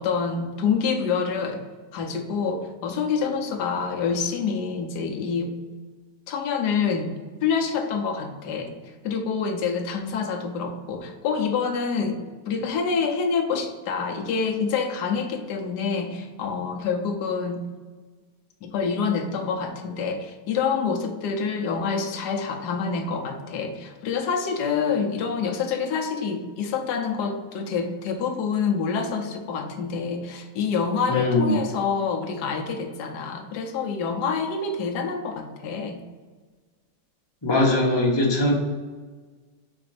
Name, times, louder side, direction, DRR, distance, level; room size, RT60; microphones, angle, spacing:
voice 1, 0.0-1.6 1.9-5.5 6.3-7.1 7.4-8.7 9.0-12.2 12.5-17.7 18.6-36.0, left 5 dB, 60° left, 3 dB, 1.2 m, -27 dB
voice 2, 31.1-31.5 37.4-38.5, left 2 dB, 20° left, -3 dB, 0.8 m, -21 dB
5.0 x 4.3 x 5.0 m, 1.4 s
omnidirectional pair, 2.4 m